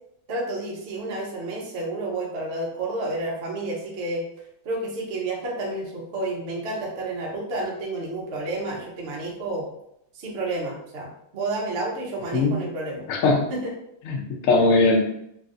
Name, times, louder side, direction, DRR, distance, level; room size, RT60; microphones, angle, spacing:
voice 1, 0.3-4.2 4.6-9.7 10.1-11.1 11.3-13.0 13.5-13.7, right 2 dB, 80° right, -3 dB, 0.5 m, -30 dB
voice 2, 13.1-13.5 14.0-15.1, left 3 dB, 90° left, 1 dB, 0.7 m, -20 dB
3.0 x 2.6 x 2.4 m, 0.77 s
omnidirectional pair, 2.1 m